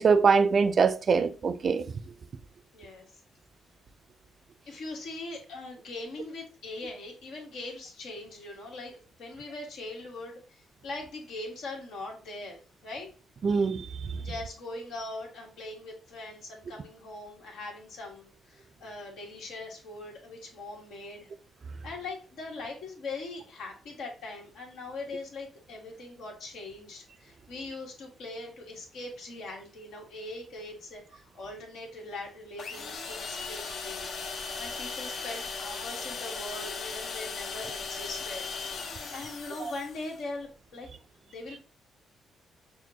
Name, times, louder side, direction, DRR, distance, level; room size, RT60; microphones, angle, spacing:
voice 1, 0.0-1.9 13.4-14.1 39.6-39.7, right 5 dB, 45° right, 0.4 m, -23 dB
voice 2, 2.7-3.1 4.7-13.1 14.2-21.3 21.8-34.1 34.6-38.5 39.1-40.9 41.3-41.7, left 2 dB, 75° left, 1.4 m, -41 dB
sound 1, 32.6-40.2, left 4 dB, 60° left, 0.7 m, -37 dB
6.1 x 2.2 x 2.8 m
cardioid pair, 90°, 0 cm